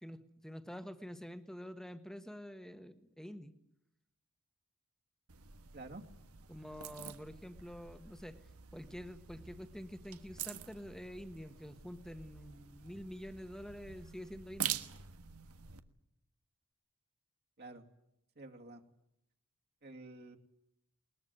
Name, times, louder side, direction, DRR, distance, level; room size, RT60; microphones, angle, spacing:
voice 1, 0.0-3.5 6.5-8.4 8.7-14.8, equal, ahead, 9 dB, 1.4 m, -47 dB
sound 1, 5.3-15.8, right 10 dB, 80° right, 1.4 m, -46 dB
voice 2, 18.4-18.8 19.8-20.4, right 2 dB, 50° right, 3 dB, 2.5 m, -49 dB
21.0 x 21.0 x 9.3 m, 0.81 s
head